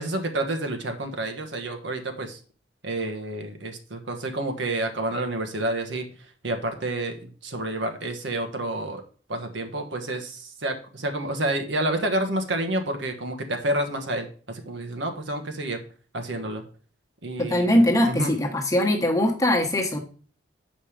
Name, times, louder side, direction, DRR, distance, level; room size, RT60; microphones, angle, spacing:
voice 1, 0.0-2.4 2.8-6.1 6.4-9.0 9.3-15.8 16.1-16.6 17.2-17.8 18.0-18.3, right 1 dB, 70° right, 5 dB, 1.3 m, -29 dB
voice 2, 17.4-20.0, left 1 dB, 15° left, 1 dB, 1.2 m, -21 dB
7.4 x 5.3 x 5.0 m, 0.40 s
head